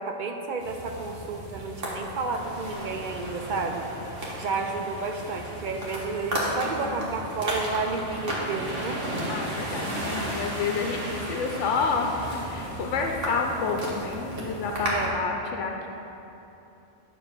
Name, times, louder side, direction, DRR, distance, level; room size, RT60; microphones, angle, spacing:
voice 1, 0.0-3.8 4.1-9.0 14.9-15.2, right 3 dB, 60° right, 4 dB, 0.5 m, -31 dB
sound 1, 0.6-15.1, right 1 dB, 85° right, 1.7 m, -34 dB
voice 2, 6.6-7.1 9.3-15.9, left 4 dB, 85° left, 2 dB, 0.9 m, -29 dB
9.4 x 3.4 x 5.9 m, 3.0 s
omnidirectional pair, 1.2 m